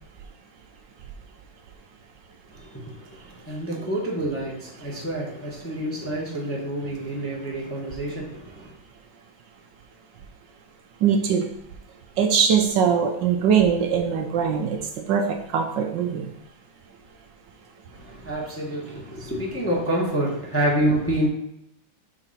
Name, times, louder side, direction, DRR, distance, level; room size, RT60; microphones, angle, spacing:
voice 1, 2.5-8.7 17.9-21.3, right 1 dB, 10° left, -4 dB, 1.0 m, -28 dB
voice 2, 11.0-11.5 12.2-14.8 15.1-16.3, right 7 dB, 70° right, 4 dB, 1.3 m, -21 dB
5.0 x 3.9 x 5.5 m, 0.81 s
omnidirectional pair, 2.1 m